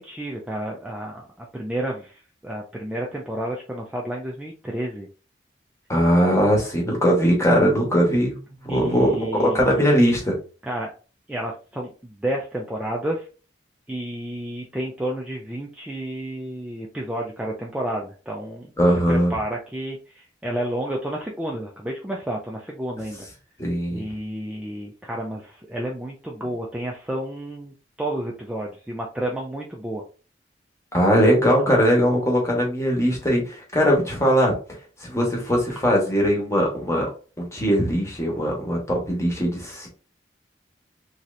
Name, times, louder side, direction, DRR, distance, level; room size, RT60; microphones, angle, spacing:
voice 1, 0.0-5.1 8.7-9.8 10.6-10.9 11.3-13.3 13.9-18.7 19.1-23.3 23.9-30.0, right 1 dB, 5° right, -2 dB, 0.3 m, -31 dB
voice 2, 5.9-10.4 18.8-19.3 23.6-24.0 30.9-34.5 35.0-37.1 37.4-39.9, equal, 15° left, -1 dB, 1.0 m, -20 dB
3.1 x 2.8 x 2.4 m, 0.37 s
head